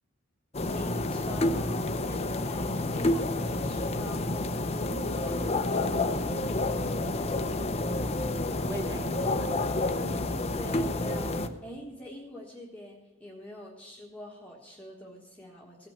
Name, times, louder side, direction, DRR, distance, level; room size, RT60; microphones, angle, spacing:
sound 1, 0.5-11.5, left 2 dB, 35° left, 0.7 m, -29 dB
voice 1, 0.7-5.5 10.5-15.9, left 1 dB, 5° left, -3 dB, 1.4 m, -45 dB
voice 2, 6.8-7.3 8.7-9.7 9.9-10.2, right 1 dB, 15° right, 2 dB, 2.2 m, -40 dB
16.5 x 6.0 x 7.4 m, 1.2 s
head